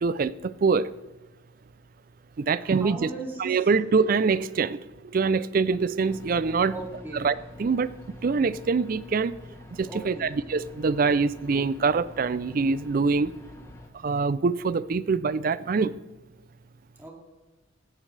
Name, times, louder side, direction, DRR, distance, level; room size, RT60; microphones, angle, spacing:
voice 1, 0.0-0.9 2.4-3.1 3.4-4.8 5.1-6.7 7.1-7.9 8.2-9.3 9.8-13.3 14.0-15.9, right 4 dB, 45° right, 17 dB, 0.4 m, -24 dB
voice 2, 2.6-3.6 6.7-7.2 9.8-10.4 17.0-17.1, right 2 dB, 10° right, -1 dB, 2.4 m, -38 dB
sound 1, 6.1-13.9, left 1 dB, 15° left, 1.1 m, -46 dB
16.0 x 11.5 x 3.3 m, 1.2 s
head